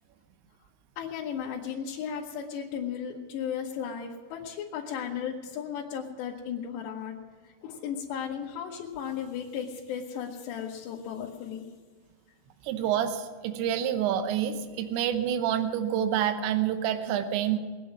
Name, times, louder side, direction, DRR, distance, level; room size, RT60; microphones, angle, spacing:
voice 1, 1.0-7.2 7.4-11.7, left 8 dB, 75° left, -3 dB, 3.2 m, -35 dB
voice 2, 12.6-17.6, right 10 dB, 80° right, 9 dB, 3.2 m, -28 dB
21.0 x 9.3 x 6.0 m, 1.5 s
omnidirectional pair, 5.4 m